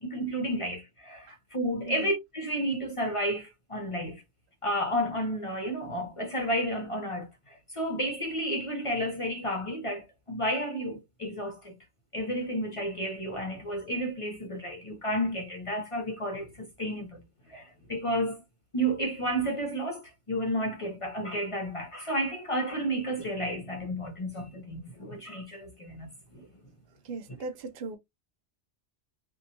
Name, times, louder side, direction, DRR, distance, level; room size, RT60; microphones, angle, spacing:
voice 1, 0.0-4.2 4.6-11.7 12.1-17.2 17.5-18.4 18.7-26.5, equal, 45° left, 0.4 m, -32 dB
voice 2, 27.0-28.0, right 3 dB, 55° right, 0.7 m, -38 dB
2.8 x 2.2 x 2.6 m
omnidirectional pair, 1.2 m